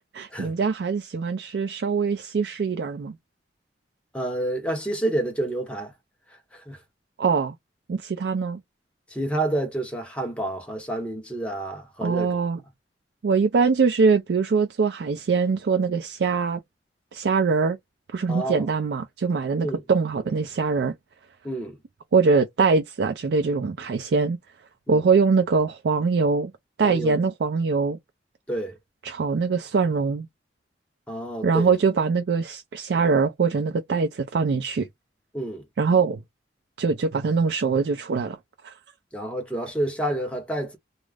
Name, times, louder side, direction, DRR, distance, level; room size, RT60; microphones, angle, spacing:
voice 1, 0.1-3.1 7.2-7.5 7.9-8.6 12.0-12.6 13.2-16.6 17.1-17.8 18.1-21.0 22.1-24.4 24.9-26.5 26.8-28.0 29.0-30.3 31.4-34.9 35.8-36.2 36.8-38.4 38.6-38.7, right 4 dB, 65° right, 0.4 m, -23 dB
voice 2, 4.1-5.9 6.5-6.8 9.1-12.4 18.3-18.7 19.6-19.8 21.4-21.8 24.9-25.1 26.8-27.2 28.5-28.8 31.1-31.7 35.3-35.7 39.1-40.8, right 1 dB, 5° left, 0.7 m, -29 dB
2.4 x 2.0 x 3.2 m
head